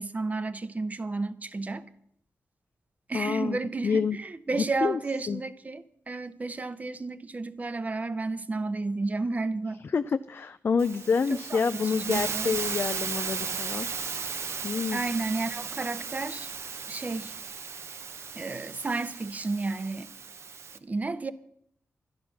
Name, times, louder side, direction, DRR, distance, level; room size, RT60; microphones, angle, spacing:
voice 1, 0.0-1.9 3.1-9.8 11.3-12.6 14.9-16.5 16.9-17.4 18.3-20.1 20.7-21.3, right 3 dB, 30° right, 0.7 m, -32 dB
voice 2, 3.1-3.6 3.8-4.2 4.6-5.0 5.3-5.4 9.9-13.9 14.6-15.1, left 5 dB, 50° left, 0.4 m, -27 dB
Hiss, 10.8-20.8, right 5 dB, 65° right, 0.7 m, -36 dB
12.0 x 11.0 x 5.9 m
cardioid pair, 90°, 5 cm